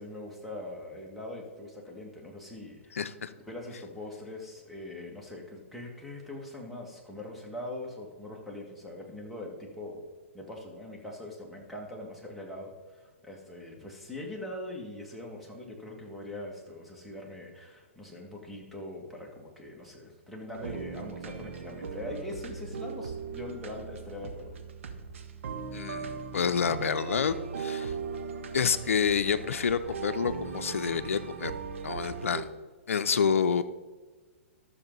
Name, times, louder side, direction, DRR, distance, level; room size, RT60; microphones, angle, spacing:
voice 1, 0.0-3.0 3.5-10.0 10.3-24.6, left 1 dB, ahead, -3 dB, 2.0 m, -42 dB
voice 2, 2.9-3.3 25.7-27.9 28.5-31.5 31.8-32.5 32.9-33.6, left 6 dB, 75° left, 11 dB, 0.6 m, -28 dB
sound 1, 20.5-32.4, right 5 dB, 65° right, 1.0 m, -38 dB
12.0 x 6.8 x 4.0 m, 1.3 s
hypercardioid pair, 125°, 7 cm